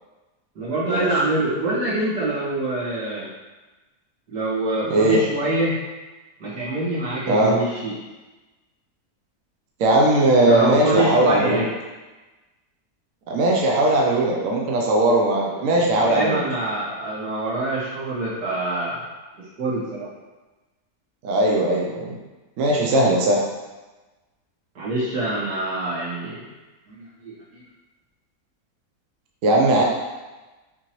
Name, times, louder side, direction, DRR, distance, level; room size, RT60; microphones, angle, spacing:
voice 1, 0.6-3.3 4.3-5.7 6.4-7.9 10.4-11.7 15.7-19.0 19.6-20.1 24.8-26.4 26.9-27.6, right 2 dB, 85° right, -9 dB, 2.2 m, -25 dB
voice 2, 4.9-5.2 7.3-7.5 9.8-11.7 13.3-16.5 21.2-22.2 22.6-23.4 29.4-29.8, right 1 dB, 65° right, -2 dB, 1.0 m, -19 dB
6.0 x 2.9 x 3.0 m, 1.2 s
omnidirectional pair, 1.7 m